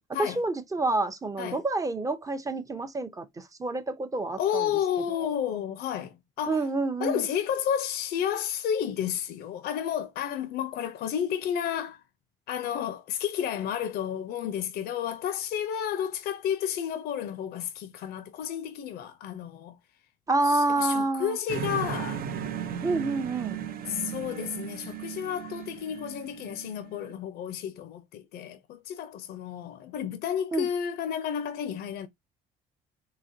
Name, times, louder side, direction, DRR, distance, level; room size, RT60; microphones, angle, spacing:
voice 1, 0.0-4.6 5.4-5.6 6.5-7.2 20.3-21.4 22.8-23.6 30.5-30.7, right 2 dB, 20° right, 0.6 m, -28 dB
voice 2, 4.4-6.7 7.0-12.0 12.5-19.8 20.4-22.3 23.9-32.1, left 9 dB, 70° left, 0.6 m, -31 dB
sound 1, 21.5-27.1, right 8 dB, 60° right, 0.6 m, -36 dB
4.0 x 2.8 x 2.7 m
cardioid pair, 110°, 17 cm